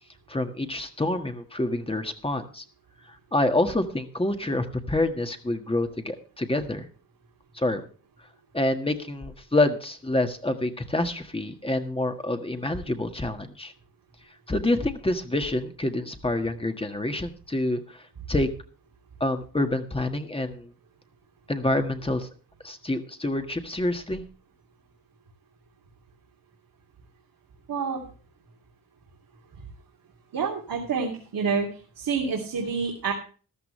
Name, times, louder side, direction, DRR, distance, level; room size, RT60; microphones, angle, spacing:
voice 1, 0.3-2.6 3.3-6.9 7.5-7.8 8.5-13.7 14.5-18.5 19.2-20.7 21.5-22.3 22.6-24.2, left 2 dB, 15° left, 6 dB, 1.6 m, -27 dB
voice 2, 27.7-28.0 30.3-31.7 32.0-33.1, right 5 dB, 80° right, -1 dB, 3.0 m, -27 dB
14.0 x 13.5 x 3.2 m, 0.38 s
wide cardioid pair, 120°, 34 cm